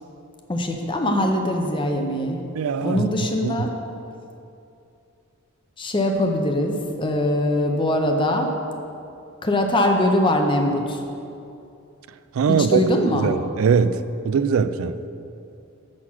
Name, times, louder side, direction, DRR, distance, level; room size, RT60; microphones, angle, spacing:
voice 1, 0.5-2.4 2.8-3.7 5.8-8.5 9.4-11.0 12.6-13.3, left 1 dB, 25° left, 3 dB, 0.6 m, -22 dB
voice 2, 2.5-3.1 3.4-3.7 12.3-12.8 13.2-14.0 14.2-15.0, right 6 dB, 80° right, 13 dB, 0.3 m, -21 dB
6.4 x 5.9 x 5.8 m, 2.7 s
head